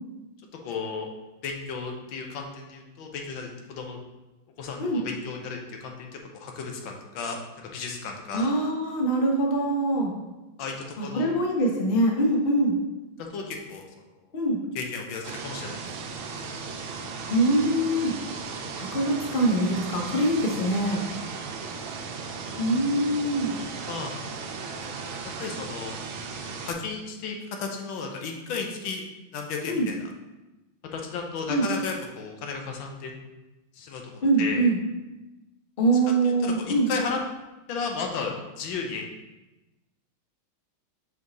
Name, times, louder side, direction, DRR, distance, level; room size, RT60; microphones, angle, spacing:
voice 1, 0.6-1.1 1.4-4.0 4.6-7.4 7.6-8.5 10.6-10.7 11.0-11.3 13.3-13.8 14.7-15.9 20.9-21.2 23.8-24.1 25.4-26.0 26.6-29.0 29.3-30.1 30.9-33.1 33.7-34.7 36.4-37.2 37.7-39.1, left 5 dB, 75° left, 2 dB, 1.5 m, -34 dB
voice 2, 8.3-10.1 11.0-12.8 14.3-14.6 17.3-18.1 18.7-21.0 22.6-23.5 29.7-29.9 31.5-31.7 34.2-34.8 35.8-36.9, right 1 dB, 50° left, 0 dB, 0.6 m, -23 dB
sound 1, 15.2-26.7, right 5 dB, 80° right, 1.5 m, -36 dB
5.7 x 4.5 x 3.9 m, 1.1 s
omnidirectional pair, 2.3 m